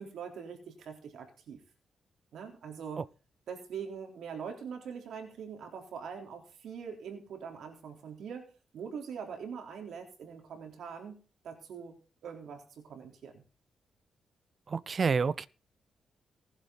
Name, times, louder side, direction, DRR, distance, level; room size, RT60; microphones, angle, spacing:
voice 1, 0.0-1.6 2.3-3.1 3.5-11.2 11.4-12.0 12.2-13.4, right 6 dB, 80° right, 3.7 m, -43 dB
voice 2, 14.7-15.5, right 5 dB, 35° right, 0.6 m, -28 dB
19.0 x 11.0 x 4.0 m
wide cardioid pair, 150°, 0 cm